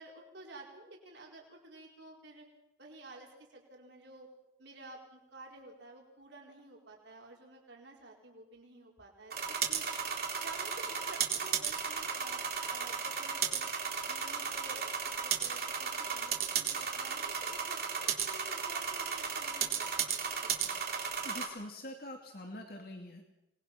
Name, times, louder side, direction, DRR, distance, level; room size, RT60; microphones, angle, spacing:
voice 1, 0.0-2.4 2.8-4.3 4.6-9.9 10.4-12.4 12.7-13.7 14.1-20.1 20.4-20.5, right 2 dB, 80° right, 0 dB, 4.5 m, -52 dB
sound 1, 9.3-21.5, right 7 dB, 55° right, 3.9 m, -34 dB
voice 2, 21.2-23.2, left 1 dB, 55° left, 2 dB, 2.5 m, -45 dB
27.5 x 20.0 x 6.0 m, 0.91 s
head